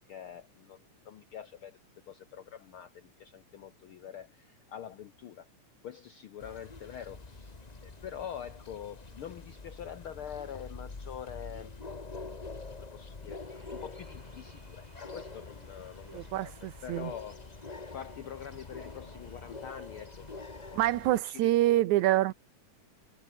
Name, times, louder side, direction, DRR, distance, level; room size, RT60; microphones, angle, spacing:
voice 1, 0.1-1.8 2.1-5.5 5.8-11.7 12.1-12.5 12.8-16.5 16.8-17.4 17.9-21.6 22.0-22.1, left 9 dB, 70° left, 1.3 m, -45 dB
sound 1, 6.4-21.2, left 3 dB, 45° left, 0.5 m, -46 dB
sound 2, 13.4-20.9, right 1 dB, 10° right, 5.7 m, -60 dB
voice 2, 16.1-17.1 20.7-22.3, right 15 dB, 75° right, 2.1 m, -26 dB
omnidirectional pair, 3.5 m